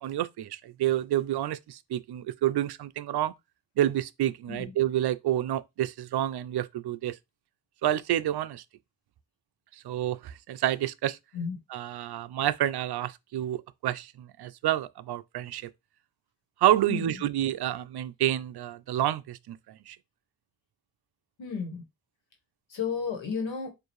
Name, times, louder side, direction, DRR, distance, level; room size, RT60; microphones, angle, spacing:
voice 1, 0.0-3.3 3.8-7.1 7.8-8.6 9.8-11.2 11.7-15.7 16.6-20.0, right 12 dB, 60° right, 0.5 m, -29 dB
voice 2, 21.4-21.8 22.7-23.7, left 6 dB, 80° left, 1.5 m, -32 dB
4.4 x 2.7 x 3.1 m
cardioid pair, 60°, 45 cm